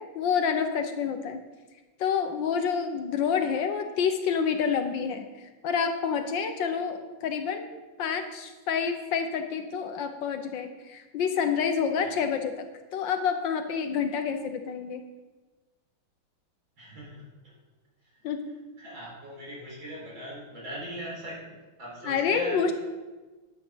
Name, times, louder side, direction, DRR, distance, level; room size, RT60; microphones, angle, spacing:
voice 1, 0.0-1.4 2.0-5.3 5.6-7.7 8.0-12.7 12.9-15.0 18.2-18.5 22.0-22.7, left 6 dB, 65° left, 7 dB, 1.4 m, -28 dB
voice 2, 16.8-17.5 18.1-18.2 18.8-22.7, right 1 dB, 60° right, -4 dB, 4.9 m, -40 dB
10.5 x 8.0 x 5.6 m, 1.2 s
omnidirectional pair, 2.4 m